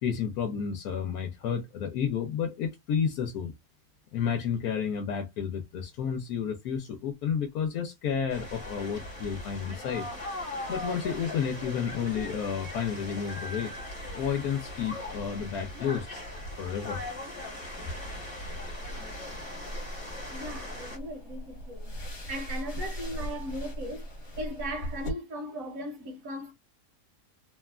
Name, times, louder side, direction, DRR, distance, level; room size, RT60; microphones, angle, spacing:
voice 1, 0.0-3.5 4.1-10.1 10.7-13.7 14.1-16.1 16.6-17.0, left 7 dB, 85° left, 1.1 m, -31 dB
sound 1, 8.3-21.0, left 1 dB, 25° left, 1.1 m, -39 dB
sound 2, 18.5-25.1, equal, 45° left, 1.2 m, -39 dB
voice 2, 20.3-21.9 22.3-24.1 24.4-26.5, equal, 65° right, 1.3 m, -37 dB
3.1 x 2.3 x 2.3 m
omnidirectional pair, 1.6 m